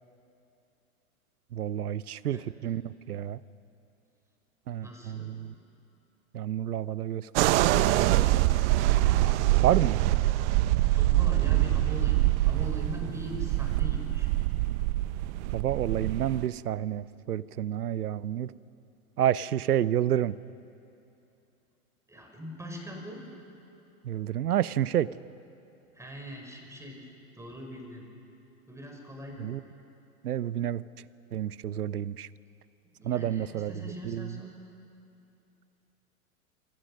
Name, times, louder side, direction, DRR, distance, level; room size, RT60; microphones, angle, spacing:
voice 1, 1.5-3.4 4.7-5.5 6.3-8.3 9.6-10.0 15.5-18.5 19.2-20.4 24.0-25.1 29.4-29.6 30.2-30.8 31.3-32.3 33.0-33.7 34.0-34.3, right 11 dB, 90° right, 19 dB, 0.7 m, -29 dB
voice 2, 4.8-5.3 10.9-14.3 22.1-23.2 25.9-27.0 27.4-28.1 28.7-29.5 32.8-34.5, equal, 5° right, 2 dB, 4.9 m, -41 dB
sound 1, 7.4-16.5, right 16 dB, 50° right, 0.9 m, -25 dB
27.5 x 24.0 x 6.4 m, 2.8 s
hypercardioid pair, 110°, 44 cm